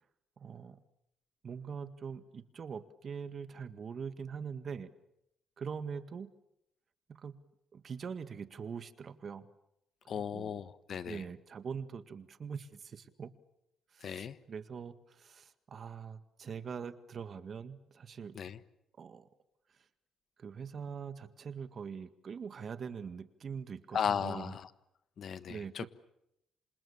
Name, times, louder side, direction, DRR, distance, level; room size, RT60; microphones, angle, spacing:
voice 1, 0.4-0.8 1.4-4.9 5.6-6.3 7.1-9.5 10.2-10.6 11.1-13.3 13.9-18.4 19.0-19.3 20.4-24.6 25.5-25.9, right 6 dB, 50° right, 11 dB, 1.8 m, -43 dB
voice 2, 10.1-11.2 14.0-14.4 18.3-18.6 23.9-24.7 25.2-25.9, left 8 dB, 60° left, 14 dB, 1.3 m, -36 dB
28.0 x 26.5 x 7.2 m, 0.81 s
cardioid pair, 90°, 0 cm